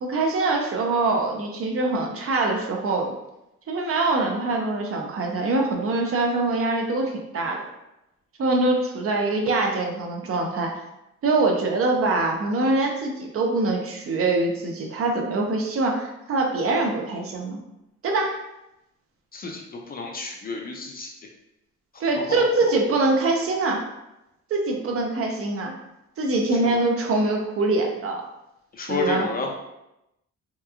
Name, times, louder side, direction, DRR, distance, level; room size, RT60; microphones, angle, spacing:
voice 1, 0.0-3.1 3.7-7.6 8.4-10.8 11.2-17.6 18.0-18.4 22.0-23.9 24.5-25.7 26.2-28.2 28.9-29.3, right 2 dB, 50° right, 2 dB, 0.5 m, -24 dB
voice 2, 19.9-21.1 22.3-22.4 26.6-26.8 28.7-29.5, left 3 dB, 30° left, 1 dB, 0.4 m, -29 dB
2.9 x 2.3 x 2.4 m, 0.89 s
cardioid pair, 90°, 30 cm